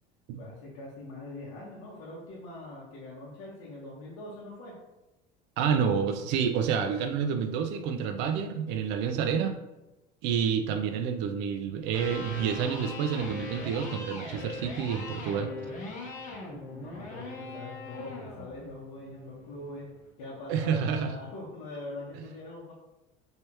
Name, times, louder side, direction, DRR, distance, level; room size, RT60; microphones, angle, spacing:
voice 1, 0.4-4.8 16.7-22.7, left 2 dB, 75° left, -6 dB, 1.3 m, -43 dB
voice 2, 5.6-9.6 10.2-15.5 20.5-21.1, right 7 dB, 70° right, 6 dB, 0.5 m, -29 dB
Electric guitar, 11.8-19.9, left 2 dB, 40° left, 1.4 m, -41 dB
4.6 x 3.3 x 3.0 m, 1.0 s
cardioid pair, 145°, 19 cm